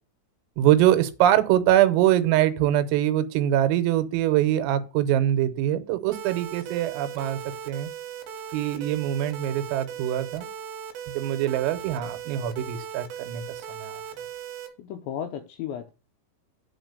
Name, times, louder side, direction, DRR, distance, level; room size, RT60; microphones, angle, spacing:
voice 1, 0.6-7.4 7.7-7.9 8.5-10.5 11.2-13.4 13.7-14.0, right 12 dB, 90° right, 3.6 m, -23 dB
sound 1, 6.1-14.7, right 8 dB, 70° right, 3.3 m, -38 dB
voice 2, 14.8-15.9, left 9 dB, 85° left, 2.6 m, -34 dB
8.9 x 4.1 x 6.6 m
omnidirectional pair, 5.8 m